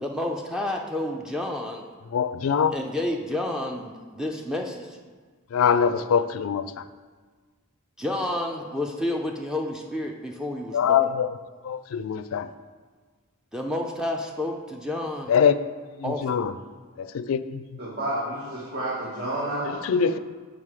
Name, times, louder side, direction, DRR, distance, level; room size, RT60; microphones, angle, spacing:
voice 1, 0.0-1.9 2.7-5.0 8.0-11.1 13.5-15.3 16.0-16.4, left 1 dB, 5° right, 2 dB, 0.4 m, -30 dB
voice 2, 2.1-2.7 5.5-6.9 10.7-11.3 11.6-12.5 15.3-15.6 16.0-16.5 17.0-17.8 19.6-20.2, left 7 dB, 70° left, 13 dB, 0.3 m, -23 dB
voice 3, 17.8-19.8, right 1 dB, 50° right, -8 dB, 1.7 m, -30 dB
7.4 x 5.1 x 4.8 m, 1.5 s
head